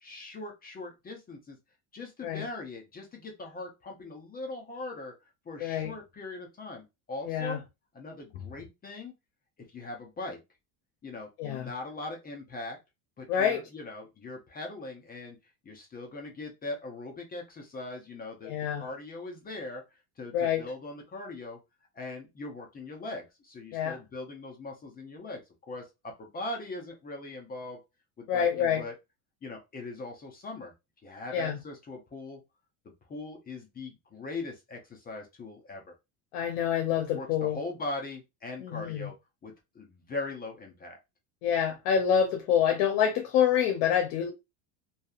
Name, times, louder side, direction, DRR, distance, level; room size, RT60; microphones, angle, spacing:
voice 1, 0.0-1.6 1.9-5.1 5.5-7.6 7.9-9.1 9.6-10.4 11.0-12.8 13.2-15.4 15.6-19.8 20.2-21.6 21.9-25.4 25.7-27.8 28.2-28.9 29.4-30.7 31.0-32.4 33.1-35.9 37.1-39.1 39.4-41.0, left 2 dB, 20° left, 0.6 m, -40 dB
voice 2, 5.6-5.9 7.3-7.6 11.4-11.7 13.3-13.6 18.4-18.8 20.3-20.6 23.7-24.0 28.3-28.8 31.3-31.6 36.3-37.6 38.6-39.1 41.4-44.3, left 8 dB, 80° left, 0.7 m, -27 dB
2.6 x 2.3 x 2.3 m
supercardioid pair, 130°, 46 cm